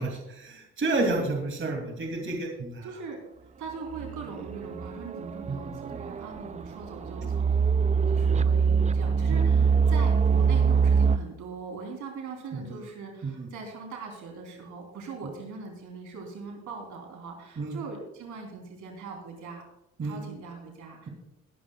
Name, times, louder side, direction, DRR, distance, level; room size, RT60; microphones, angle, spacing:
voice 1, 0.0-2.9 5.5-6.0 9.3-9.5 12.5-12.8 13.2-13.5 17.6-17.8 20.0-20.2, right 2 dB, 40° right, 1 dB, 2.8 m, -31 dB
voice 2, 2.8-3.2 3.6-7.5 7.8-19.6 20.0-21.1, right 4 dB, 75° right, 1 dB, 3.6 m, -41 dB
sound 1, 3.9-11.2, right 6 dB, 25° right, 0.4 m, -24 dB
20.0 x 11.0 x 2.4 m, 0.85 s
cardioid pair, 90°, 30 cm